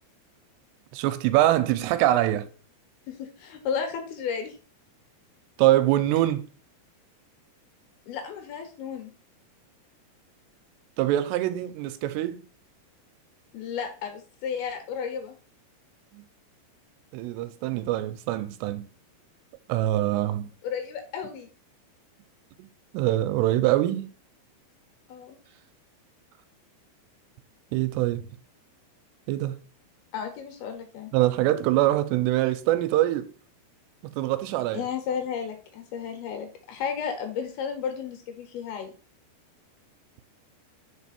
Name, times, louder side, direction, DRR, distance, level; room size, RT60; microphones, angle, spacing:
voice 1, 0.9-2.5 5.6-6.4 11.0-12.4 16.1-16.2 17.1-18.9 19.7-20.5 22.9-24.1 27.7-28.3 29.3-29.6 31.1-33.3 34.1-34.8, right 14 dB, 90° right, 2.7 m, -24 dB
voice 2, 3.1-4.6 8.1-9.1 13.5-15.3 20.6-21.5 25.1-25.4 30.1-31.1 34.7-38.9, left 7 dB, 70° left, 2.9 m, -33 dB
5.3 x 4.8 x 4.2 m
omnidirectional pair, 4.8 m